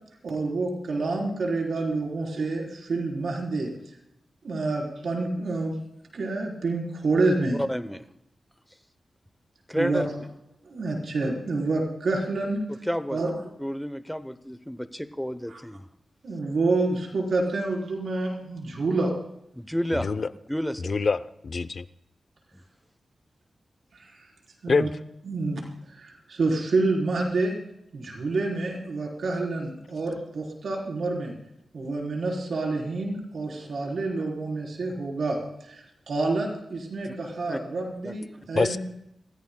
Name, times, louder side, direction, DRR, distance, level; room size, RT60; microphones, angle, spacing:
voice 1, 0.2-3.7 4.4-5.8 6.1-7.6 9.8-10.0 10.7-12.6 13.1-13.3 15.5-15.6 16.2-19.1 23.9-24.3 24.6-24.9 25.3-25.6 25.9-27.5 27.9-31.3 31.7-35.4 35.6-38.8, right 3 dB, 70° right, -1 dB, 4.0 m, -28 dB
voice 2, 7.5-8.0 9.7-10.3 12.7-13.2 13.6-15.9 19.5-21.0 37.0-37.1 37.5-37.6 38.0-38.1 38.4-38.5, equal, ahead, 11 dB, 0.8 m, -31 dB
voice 3, 20.8-21.8 24.7-24.9 38.5-38.8, left 4 dB, 55° left, 13 dB, 0.6 m, -25 dB
28.0 x 15.0 x 2.3 m, 0.79 s
wide cardioid pair, 115°, 0 cm